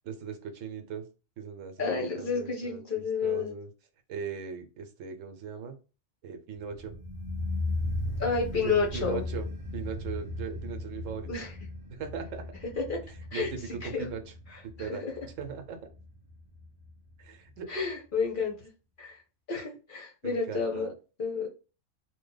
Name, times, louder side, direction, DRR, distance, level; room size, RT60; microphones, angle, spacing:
voice 1, 0.0-1.0 1.4-3.7 4.1-5.8 6.2-6.9 8.5-9.5 9.7-11.3 11.9-12.4 13.3-14.2 14.6-15.8 17.2-17.7 20.2-20.9, right 6 dB, 75° right, 6 dB, 1.0 m, -39 dB
voice 2, 1.8-3.5 8.2-9.2 11.3-11.5 12.8-13.0 13.3-13.5 13.8-13.9 14.5-15.1 17.7-18.7 19.0-19.2 19.5-20.9 21.2-21.5, left 5 dB, 50° left, -1 dB, 0.7 m, -30 dB
sound 1, 6.5-17.6 17.8-17.9, left 2 dB, 35° right, 0.3 m, -37 dB
2.7 x 2.1 x 3.9 m, 0.33 s
omnidirectional pair, 1.3 m